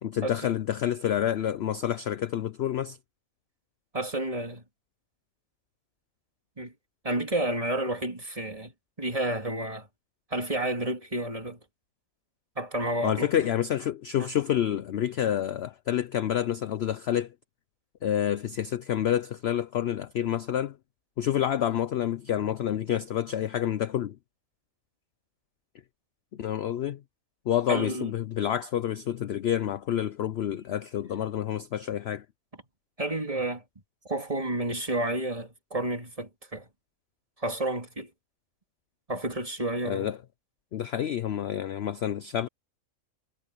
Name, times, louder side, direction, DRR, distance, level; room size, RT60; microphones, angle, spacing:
voice 1, 0.0-3.0 13.0-17.3 18.0-20.7 21.2-24.2 26.4-27.0 27.5-32.2 39.8-40.2 40.7-42.5, left 10 dB, 60° left, 0.7 m, -28 dB
voice 2, 3.9-4.6 6.6-6.7 7.0-8.7 9.0-9.9 10.3-11.6 12.6-13.3 14.2-14.3 27.7-28.1 33.0-33.6 34.1-36.7 37.4-38.1 39.1-40.1, right 1 dB, 25° right, 2.8 m, -30 dB
omnidirectional pair, 1.6 m